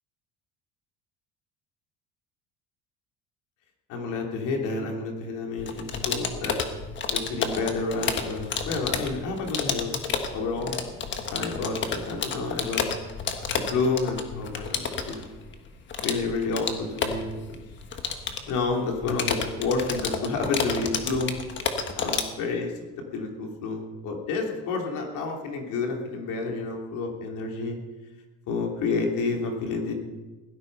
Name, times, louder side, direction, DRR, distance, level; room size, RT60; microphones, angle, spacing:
voice 1, 3.9-6.6 7.1-10.0 10.3-10.8 11.3-12.9 13.5-15.2 16.0-17.6 18.5-21.3 21.9-22.7 23.1-27.8 28.5-29.9, left 3 dB, 75° left, 1 dB, 3.3 m, -29 dB
sound 1, 5.6-22.2, left 6 dB, 35° left, 1.5 m, -31 dB
17.0 x 13.0 x 5.5 m, 1.2 s
cardioid pair, 150°, 31 cm